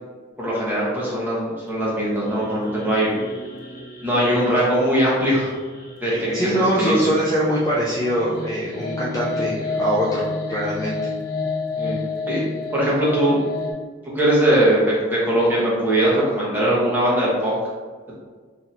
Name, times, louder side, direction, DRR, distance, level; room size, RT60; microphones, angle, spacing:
voice 1, 0.4-3.1 4.0-5.5 6.0-7.0 11.8-12.0 12.3-12.4 12.7-13.4 14.0-17.6, right 1 dB, 10° right, -8 dB, 1.0 m, -20 dB
sound 1, 1.8-13.7, left 3 dB, 50° left, 0.7 m, -31 dB
voice 2, 6.0-10.9, equal, 15° left, -7 dB, 0.4 m, -23 dB
4.2 x 2.9 x 2.6 m, 1.5 s
head